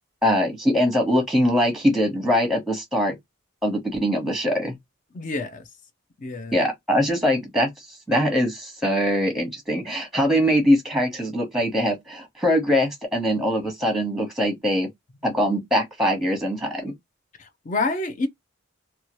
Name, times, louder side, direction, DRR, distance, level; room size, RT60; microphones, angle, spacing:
voice 1, 0.2-3.2 3.6-4.8 6.5-7.7 8.1-14.9 15.2-16.9, equal, ahead, 0.9 m, -22 dB
voice 2, 5.1-5.6 6.2-6.6 17.4-18.3, left 3 dB, 40° left, 0.4 m, -27 dB
2.7 x 2.2 x 3.0 m
head